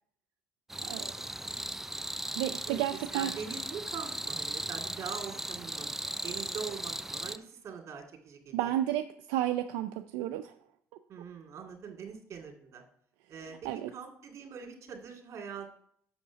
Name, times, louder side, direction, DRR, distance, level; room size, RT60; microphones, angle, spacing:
sound 1, 0.7-7.4, right 1 dB, 5° right, 0.5 m, -37 dB
voice 1, 0.8-1.1 2.4-3.3 8.5-10.5 13.6-13.9, right 13 dB, 85° right, 8 dB, 0.4 m, -32 dB
voice 2, 2.7-5.9 6.2-8.8 11.1-12.8 13.3-13.6 13.9-15.7, right 6 dB, 55° right, 2 dB, 2.1 m, -43 dB
6.5 x 5.3 x 6.7 m, 0.66 s
supercardioid pair, 70°, 6 cm